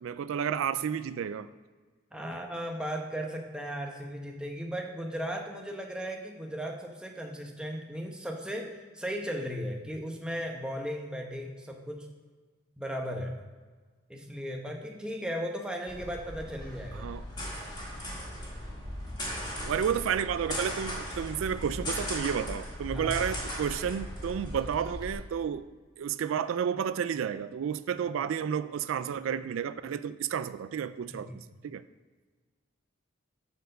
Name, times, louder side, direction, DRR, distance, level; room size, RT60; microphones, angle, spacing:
voice 1, 0.0-1.5 16.9-17.2 19.6-25.7 26.0-31.8, right 8 dB, 75° right, 14 dB, 0.3 m, -31 dB
voice 2, 2.1-12.1 12.8-13.4 14.1-17.1 22.9-23.1 31.1-31.4, equal, 5° right, 1 dB, 0.9 m, -36 dB
sound 1, 15.9-25.1, equal, 20° left, 2.1 m, -38 dB
9.3 x 4.4 x 6.6 m, 1.4 s
head